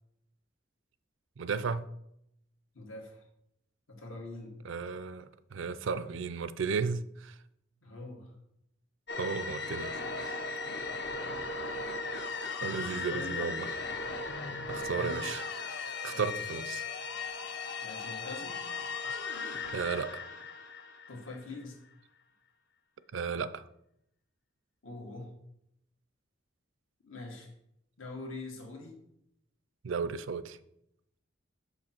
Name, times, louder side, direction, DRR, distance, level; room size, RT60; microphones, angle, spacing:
voice 1, 1.4-1.9 4.6-7.4 9.2-10.5 12.6-13.7 14.7-15.4 16.0-16.8 19.1-19.2 19.7-20.2 23.1-23.6 29.8-30.6, right 5 dB, 70° right, 0.4 m, -34 dB
voice 2, 2.7-3.2 3.9-4.6 7.8-8.4 12.7-13.6 14.8-15.3 16.1-16.2 17.8-18.7 21.1-21.8 24.8-25.3 27.0-27.5 28.0-29.0, left 3 dB, 85° left, 1.8 m, -44 dB
sound 1, 9.1-21.6, left 4 dB, 55° left, 0.7 m, -37 dB
6.5 x 5.4 x 4.4 m
head